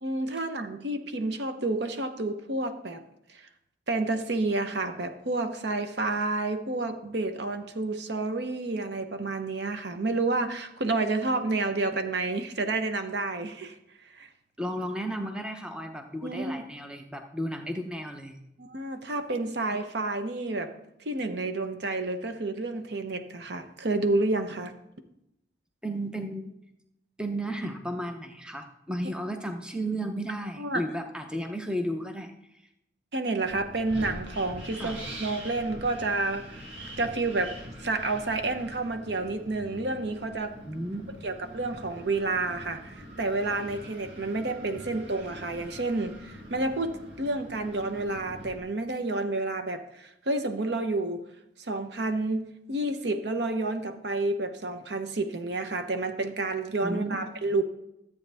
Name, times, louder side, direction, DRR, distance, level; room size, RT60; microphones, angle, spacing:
voice 1, 0.0-3.0 3.3-3.5 3.9-13.8 14.1-14.3 16.2-16.6 18.6-20.7 21.0-24.7 30.6-30.8 33.1-36.6 37.0-37.5 37.8-40.5 41.2-51.2 51.6-57.6, right 2 dB, 65° right, 8 dB, 0.9 m, -30 dB
voice 2, 14.6-18.4 25.8-26.5 27.2-32.3 34.8-35.0 40.6-41.0 56.8-57.3, right 1 dB, 5° right, 5 dB, 0.7 m, -33 dB
Wind, 33.4-48.6, equal, 90° right, 2.4 m, -44 dB
13.5 x 8.2 x 3.4 m, 0.84 s
head